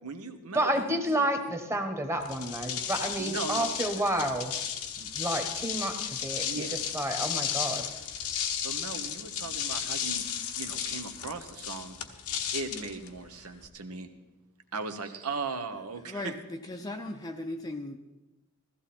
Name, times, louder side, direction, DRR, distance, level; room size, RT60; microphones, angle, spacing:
voice 1, 0.0-1.3 3.2-3.7 4.1-4.3 5.0-5.1 6.4-6.8 8.6-10.2 10.5-12.0 12.5-14.1 14.7-16.2, right 4 dB, 80° right, 8 dB, 1.3 m, -38 dB
voice 2, 0.5-4.5 5.0-6.7 6.9-7.9, right 1 dB, 10° right, 6 dB, 1.3 m, -30 dB
sound 1, 2.2-13.7, left 8 dB, 85° left, 1.1 m, -34 dB
voice 3, 16.0-18.0, left 1 dB, 20° left, 4 dB, 0.6 m, -37 dB
15.5 x 15.0 x 4.4 m, 1.0 s
head